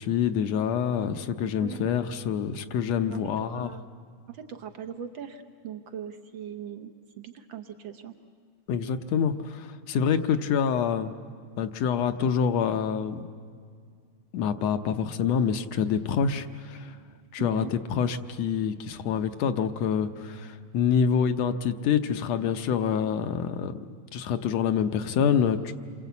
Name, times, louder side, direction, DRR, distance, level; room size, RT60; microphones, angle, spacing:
voice 1, 0.0-3.7 8.7-11.1 11.6-13.2 14.3-17.0 17.3-23.7 24.1-25.7, left 7 dB, 70° left, 8 dB, 1.9 m, -26 dB
voice 2, 1.6-1.9 3.1-3.8 4.3-8.1 17.4-17.7, right 9 dB, 65° right, 7 dB, 1.2 m, -40 dB
28.0 x 23.5 x 8.2 m, 2.1 s
omnidirectional pair, 3.3 m